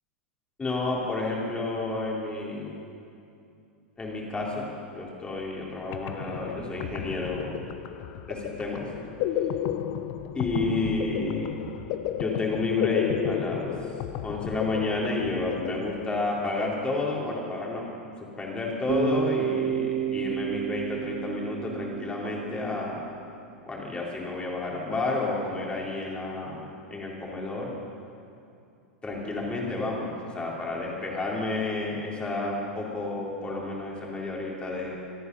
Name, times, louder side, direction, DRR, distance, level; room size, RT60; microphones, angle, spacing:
voice 1, 0.6-2.8 4.0-7.5 8.3-8.9 10.3-11.6 12.1-13.7 14.2-17.8 18.4-23.0 23.7-26.6 26.9-27.7 29.0-35.1, left 2 dB, 15° left, -3 dB, 4.0 m, -30 dB
sound 1, 5.6-5.7 5.9-16.5, left 10 dB, 50° left, 0.9 m, -33 dB
Bass guitar, 18.9-22.9, right 8 dB, 40° right, 2.3 m, -30 dB
26.5 x 9.5 x 5.6 m, 2.6 s
hypercardioid pair, 100°, 6 cm